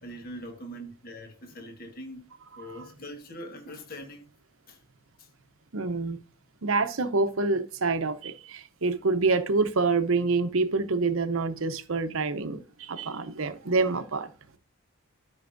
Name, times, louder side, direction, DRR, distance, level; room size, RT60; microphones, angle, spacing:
voice 1, 0.0-2.3 2.5-4.3 4.7-4.8 5.2-5.3, equal, 45° left, 1.4 m, -42 dB
voice 2, 5.7-6.2 6.6-14.3, right 3 dB, 75° right, 0.8 m, -27 dB
13.0 x 5.5 x 2.6 m
head